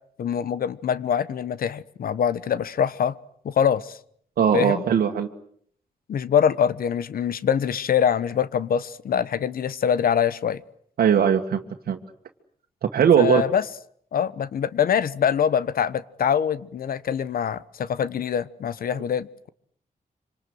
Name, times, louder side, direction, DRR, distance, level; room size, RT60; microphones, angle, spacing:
voice 1, 0.2-3.1 3.4-4.0 4.5-4.8 6.1-10.6 13.2-13.6 14.1-19.5, left 8 dB, 75° left, 17 dB, 1.1 m, -24 dB
voice 2, 4.4-5.3 11.0-12.0 12.9-13.4, right 8 dB, 80° right, 3 dB, 1.8 m, -19 dB
26.0 x 26.0 x 7.9 m, 0.64 s
wide cardioid pair, 125°, 15 cm